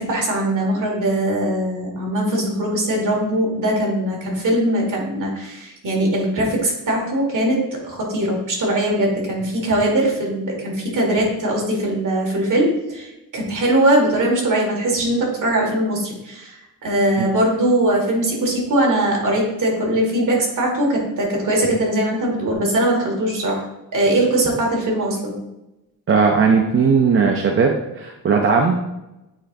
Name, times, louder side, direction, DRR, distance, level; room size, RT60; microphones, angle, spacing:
voice 1, 0.0-23.6 23.9-25.3, right 1 dB, 50° right, -2 dB, 1.9 m, -21 dB
voice 2, 26.1-28.8, right 5 dB, 35° right, 2 dB, 0.5 m, -17 dB
8.8 x 4.2 x 2.6 m, 0.94 s
wide cardioid pair, 180°, 39 cm